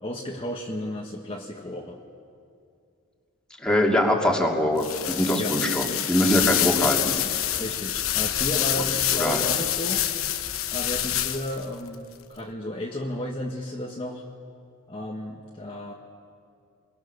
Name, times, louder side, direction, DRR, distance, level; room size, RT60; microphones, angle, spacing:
voice 1, 0.0-2.0 5.3-5.5 7.5-10.0 10.7-14.2 14.9-15.9, left 1 dB, 25° left, -2 dB, 1.5 m, -33 dB
voice 2, 3.6-7.1 8.8-8.9 9.2-9.4, left 1 dB, 5° left, -1 dB, 2.7 m, -23 dB
sound 1, 4.8-11.7, left 11 dB, 70° left, 1.1 m, -26 dB
27.0 x 22.5 x 6.8 m, 2.4 s
head